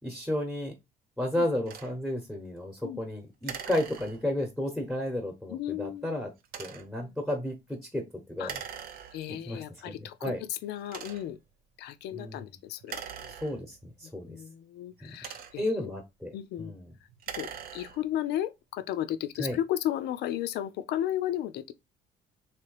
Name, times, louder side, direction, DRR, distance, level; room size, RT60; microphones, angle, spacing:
voice 1, 0.0-0.7 1.2-6.3 6.6-7.5 7.9-8.0 8.4-8.6 9.5-9.6 9.8-10.0 10.2-10.4 12.1-12.4 13.4-14.4 15.6-16.3 16.6-16.9 19.4-19.6, left 1 dB, ahead, 1.0 m, -32 dB
sound 1, 1.7-1.9 3.4-4.5 6.4-7.0 8.4-9.4 10.1-10.2 10.8-11.5 12.8-14.0 14.9-15.8 17.1-18.2, right 8 dB, 60° right, 0.7 m, -42 dB
voice 2, 5.5-6.2 7.0-7.2 8.4-8.5 9.1-11.4 11.8-13.3 14.0-15.9 16.3-16.7 17.4-21.7, left 12 dB, 80° left, 0.6 m, -34 dB
3.3 x 3.0 x 4.8 m
cardioid pair, 110°, 17 cm